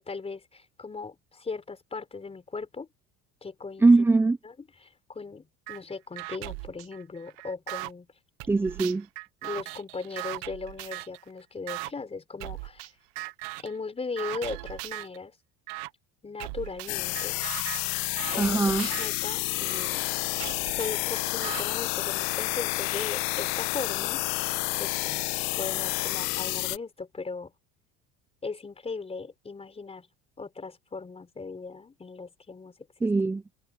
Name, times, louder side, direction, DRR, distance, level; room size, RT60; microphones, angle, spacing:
voice 1, 0.0-2.9 3.4-3.9 4.4-4.5 4.8-8.1 9.4-12.9 13.6-15.3 16.2-17.4 18.3-18.6 19.0-20.1 20.7-24.2 24.8-25.3 25.6-27.5 28.4-30.1 30.4-32.7 33.0-33.1, left 4 dB, 20° left, 4.4 m, -38 dB
voice 2, 3.8-4.4 8.5-9.1 18.4-18.9 33.0-33.4, right 3 dB, 5° right, 0.4 m, -21 dB
sound 1, 5.7-5.8 6.2-7.9 8.4-11.2 11.7-11.9 12.4-12.9 13.2-13.7 14.2-15.2 15.7-15.9 16.4-19.9 20.4-21.6, right 24 dB, 80° right, 0.8 m, -39 dB
sound 2, 16.9-26.8, left 22 dB, 80° left, 1.1 m, -30 dB
open air
cardioid pair, 120°, 32 cm